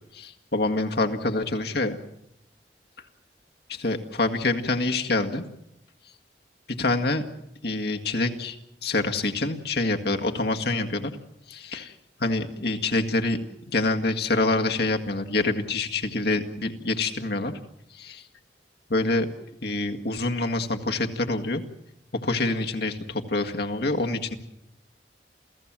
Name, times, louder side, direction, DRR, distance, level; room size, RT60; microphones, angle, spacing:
voice 1, 0.1-2.0 3.7-5.4 6.8-7.2 7.6-8.6 8.8-11.1 11.5-11.9 12.2-13.4 13.7-17.5 17.9-18.2 18.9-19.3 19.6-21.6 22.2-24.4, left 2 dB, 65° left, 5 dB, 1.9 m, -26 dB
28.5 x 16.5 x 7.5 m, 0.79 s
head